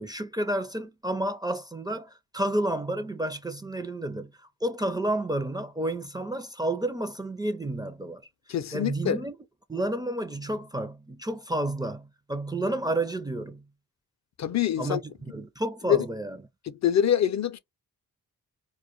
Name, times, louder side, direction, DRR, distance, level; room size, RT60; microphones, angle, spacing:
voice 1, 0.0-4.3 4.6-8.2 8.7-9.4 9.7-13.7 14.8-15.0 15.3-16.4, right 1 dB, 10° right, 0.4 m, -30 dB
voice 2, 8.5-9.2 14.4-15.0 15.9-16.0 16.6-17.6, left 10 dB, 50° left, 0.4 m, -25 dB
2.2 x 2.1 x 2.9 m
supercardioid pair, 50°, 36 cm